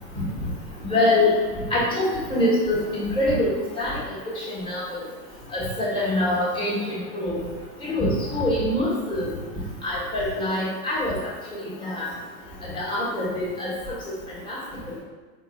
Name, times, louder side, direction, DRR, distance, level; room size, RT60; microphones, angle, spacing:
voice 1, 0.9-1.3 1.7-3.5 3.8-3.9 4.5-4.8 5.5-7.4 7.9-9.3 9.8-11.2 11.5-12.1 12.7-13.7 14.5-14.6, left 1 dB, 10° left, -7 dB, 1.2 m, -24 dB
4.5 x 3.9 x 2.3 m, 1.4 s
hypercardioid pair, 135°, 50 cm